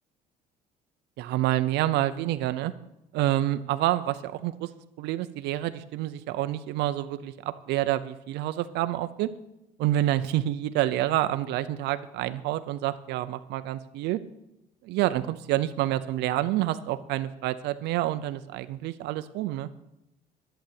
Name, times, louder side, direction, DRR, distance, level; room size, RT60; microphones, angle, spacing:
voice 1, 1.2-2.7 3.1-4.7 5.0-9.3 9.8-14.2 14.8-19.7, right 14 dB, 85° right, 11 dB, 0.7 m, -28 dB
11.5 x 7.9 x 8.7 m, 0.89 s
cardioid pair, 110°, 17 cm